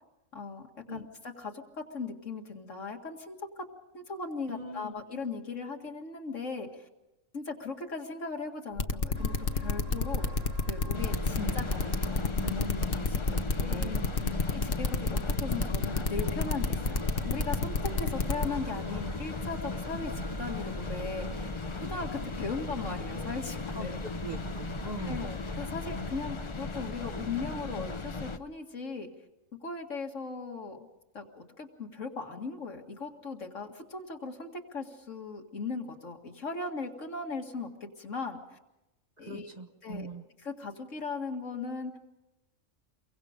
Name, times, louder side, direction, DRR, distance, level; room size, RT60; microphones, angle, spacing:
voice 1, 0.3-1.1 1.4-3.5 3.9-6.9 7.3-10.2 10.7-13.9 14.5-21.5 21.8-24.0 25.1-29.1 29.6-30.9 31.1-37.7 38.0-38.6 39.2-39.5 39.8-40.1 40.4-42.0, left 4 dB, 75° left, 3 dB, 2.4 m, -38 dB
voice 2, 4.5-5.0 11.4-11.6 13.6-14.4 23.7-25.3 26.0-26.1 39.2-40.3, right 1 dB, 35° right, 6 dB, 1.2 m, -42 dB
sound 1, 8.8-18.5, left 3 dB, 45° left, 1.2 m, -29 dB
sound 2, 9.1-26.2, right 1 dB, 50° right, 1.8 m, -43 dB
sound 3, 10.9-28.4, left 3 dB, 30° left, 0.7 m, -37 dB
29.0 x 23.0 x 5.2 m, 0.97 s
omnidirectional pair, 1.3 m